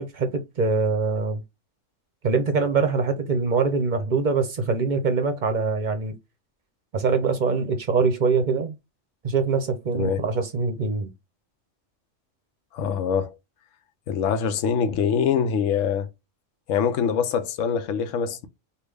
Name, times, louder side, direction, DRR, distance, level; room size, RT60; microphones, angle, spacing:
voice 1, 0.0-1.4 2.2-6.1 6.9-8.8 9.2-11.1, right 4 dB, 50° right, 0.6 m, -23 dB
voice 2, 12.7-13.3 14.1-16.1 16.7-18.5, left 7 dB, 80° left, 1.0 m, -24 dB
3.5 x 2.3 x 3.2 m
omnidirectional pair, 1.3 m